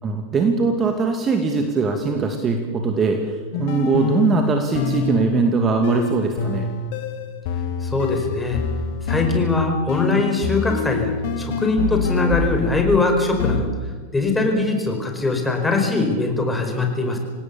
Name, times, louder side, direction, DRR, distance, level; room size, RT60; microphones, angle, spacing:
voice 1, 0.0-6.7, right 4 dB, 20° right, 4 dB, 2.4 m, -21 dB
sound 1, 3.5-13.0 13.4-13.6, left 6 dB, 50° left, 2.1 m, -26 dB
voice 2, 7.8-8.6 9.0-11.1 11.4-13.7 14.1-17.2, left 3 dB, 10° left, 3 dB, 5.0 m, -21 dB
27.0 x 18.0 x 7.1 m, 1.4 s
figure-of-eight pair, 90°, 0 cm